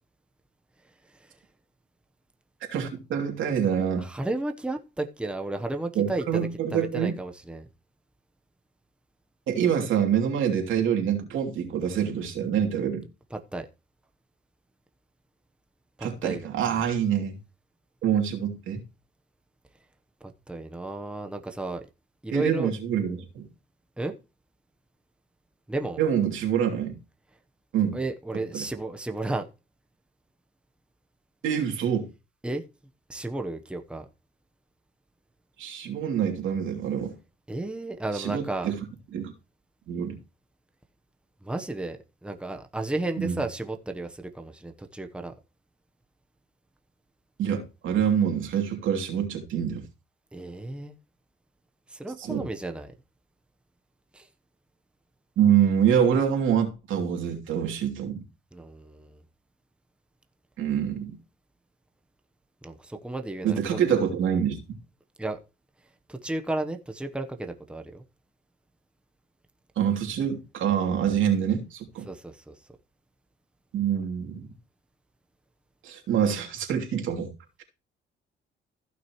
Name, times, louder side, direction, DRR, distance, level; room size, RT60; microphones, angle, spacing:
voice 1, 2.7-4.1 5.9-7.1 9.5-13.0 16.0-17.4 18.0-18.8 22.3-23.5 26.0-26.9 27.7-28.0 28.5-28.6 31.4-32.1 35.6-37.1 38.1-38.8 39.1-39.3 39.9-40.2 43.2-43.4 47.4-49.8 52.2-52.5 55.4-58.2 60.6-61.2 63.4-64.6 69.8-72.1 73.7-74.5 75.8-77.3, right 8 dB, 80° right, 2.9 m, -26 dB
voice 2, 4.0-7.7 13.3-13.7 16.0-16.8 20.2-21.9 22.2-22.7 24.0-24.1 25.7-26.0 27.9-29.5 32.4-32.6 33.1-34.1 37.5-38.7 41.4-45.3 50.3-50.9 51.9-52.9 54.1-54.3 58.5-59.2 62.6-64.0 65.2-65.4 66.1-68.0 72.0-72.5, right 2 dB, 5° right, 1.0 m, -33 dB
15.0 x 6.1 x 3.1 m
cardioid pair, 90°, 20 cm